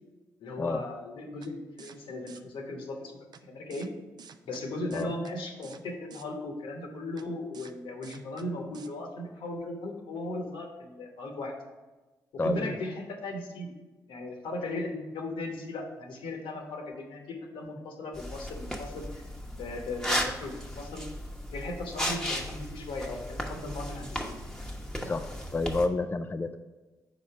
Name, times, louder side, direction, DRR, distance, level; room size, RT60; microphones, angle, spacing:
voice 1, 0.4-3.1 3.4-3.9 4.5-11.5 12.3-13.7 14.1-19.2 19.5-21.1 21.5-24.4, left 2 dB, 70° left, 2 dB, 1.1 m, -37 dB
sound 1, 1.4-1.5 1.8-2.0 2.3-2.4 3.3-3.4 3.7-3.9 4.2-4.6 4.9-5.3 5.6-5.8 6.1-6.3 7.2-7.3 7.5-7.7 8.0-8.5 8.7-8.9, right 6 dB, 50° right, 0.4 m, -49 dB
voice 2, 12.4-12.7 25.0-26.6, left 3 dB, 20° left, 8 dB, 0.4 m, -30 dB
sound 2, 18.1-25.9, equal, 5° left, 1.0 m, -36 dB
4.9 x 4.2 x 5.7 m, 1.2 s
hypercardioid pair, 40°, 9 cm